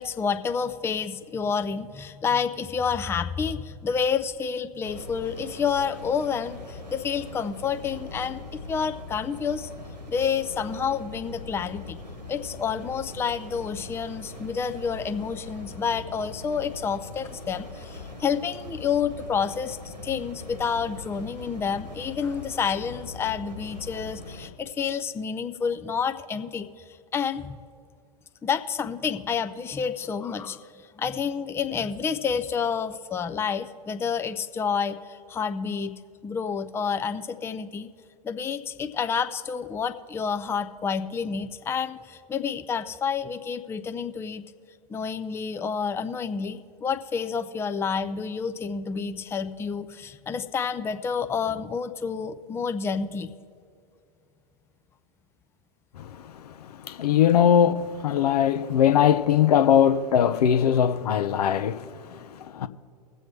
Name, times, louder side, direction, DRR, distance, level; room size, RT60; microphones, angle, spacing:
voice 1, 0.0-8.4 8.7-9.7 10.1-12.0 12.3-26.8 27.1-27.6 28.4-37.9 38.2-44.4 44.9-53.3, left 6 dB, 10° left, 0.5 m, -29 dB
sound 1, 4.8-24.5, left 2 dB, 85° right, 1.7 m, -41 dB
voice 2, 56.0-62.7, left 9 dB, 70° left, 0.6 m, -21 dB
21.5 x 7.6 x 3.2 m
figure-of-eight pair, 95°, 21 cm